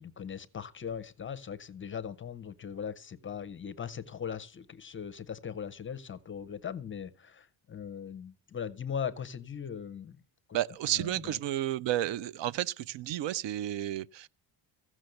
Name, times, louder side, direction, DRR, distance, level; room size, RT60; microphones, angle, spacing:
voice 1, 0.0-10.2 10.5-10.6 10.9-11.4, left 7 dB, 25° left, 0.5 m, -39 dB
voice 2, 10.5-14.3, right 12 dB, 60° right, 0.6 m, -32 dB
15.5 x 6.1 x 7.7 m
cardioid pair, 170°, 49 cm